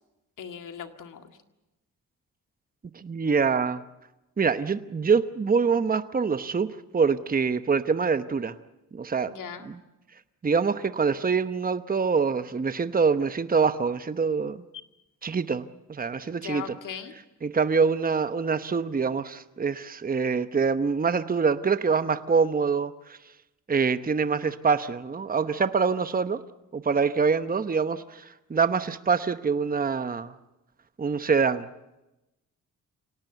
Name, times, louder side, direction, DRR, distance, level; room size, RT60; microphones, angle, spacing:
voice 1, 0.4-1.2 9.2-9.7 16.2-17.1, left 7 dB, 75° left, 6 dB, 2.1 m, -39 dB
voice 2, 2.9-3.8 4.4-8.5 8.9-9.3 9.6-9.8 10.4-14.6 15.2-16.8 17.4-23.2 23.7-26.4 26.7-30.3 31.0-31.7, right 5 dB, 25° right, 11 dB, 0.9 m, -25 dB
26.0 x 18.0 x 8.1 m, 0.98 s
cardioid pair, 75°, 32 cm